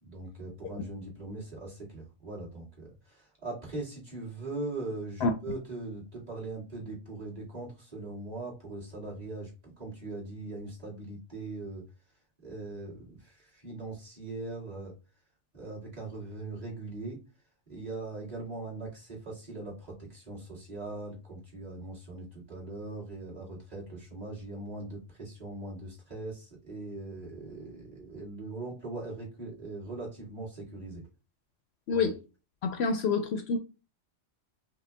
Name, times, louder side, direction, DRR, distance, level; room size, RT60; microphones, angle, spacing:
voice 1, 0.0-11.8 12.4-14.9 15.5-17.2 17.7-31.0 31.9-32.1, right 2 dB, 35° right, 2.0 m, -40 dB
voice 2, 31.9-32.2 32.6-33.6, left 4 dB, 65° left, 0.8 m, -27 dB
5.1 x 2.2 x 3.3 m
omnidirectional pair, 1.3 m